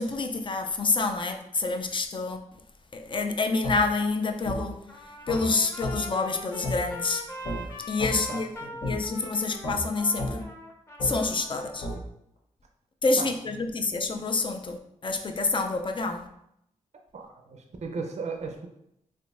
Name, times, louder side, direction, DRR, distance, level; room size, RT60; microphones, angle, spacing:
voice 1, 0.0-2.4 2.9-4.9 5.3-7.2 7.8-8.5 8.8-10.4 11.0-11.9 13.0-16.3, left 3 dB, 35° left, 0.4 m, -27 dB
sound 1, 3.6-3.8 4.4-4.6 5.3-5.4 5.8-6.0 6.6-6.8 7.4-7.6 8.0-8.1 8.8-8.9 9.6-9.8 10.2-10.3 11.0-11.1 11.8-12.0, left 1 dB, 65° left, 0.9 m, -31 dB
Trumpet, 4.9-12.0, left 1 dB, 20° left, 0.8 m, -42 dB
voice 2, 8.3-8.8 13.2-13.3 17.1-18.7, right 4 dB, 55° right, 0.5 m, -36 dB
3.6 x 2.5 x 2.5 m
cardioid pair, 50°, 14 cm